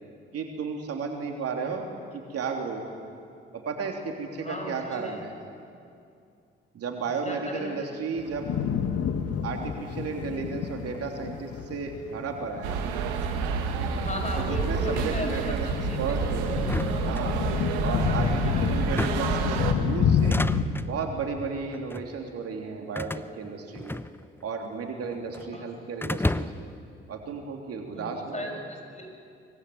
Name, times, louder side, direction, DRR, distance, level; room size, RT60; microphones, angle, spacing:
voice 1, 0.3-1.9 2.1-2.8 3.5-5.3 6.7-8.5 9.4-12.9 13.8-14.0 14.4-15.7 16.0-16.6 17.0-17.4 17.8-20.4 20.9-24.0 24.4-26.7 27.1-28.6, right 5 dB, 55° right, 2 dB, 3.3 m, -34 dB
voice 2, 4.4-5.2 7.2-7.9 14.0-16.2 17.8-19.2 25.3-25.7 27.9-29.2, left 2 dB, 25° left, 3 dB, 6.6 m, -37 dB
sound 1, 8.2-20.6, left 7 dB, 55° left, 1.7 m, -29 dB
sound 2, 12.6-19.7, right 6 dB, 75° right, 1.9 m, -29 dB
sound 3, 16.6-17.8 18.8-19.4 20.1-20.9 21.7-22.1 22.9-24.5 24.7-25.5 26.0-26.8, left 2 dB, 5° left, 0.8 m, -32 dB
24.0 x 21.5 x 9.7 m, 2.4 s
hypercardioid pair, 45°, 29 cm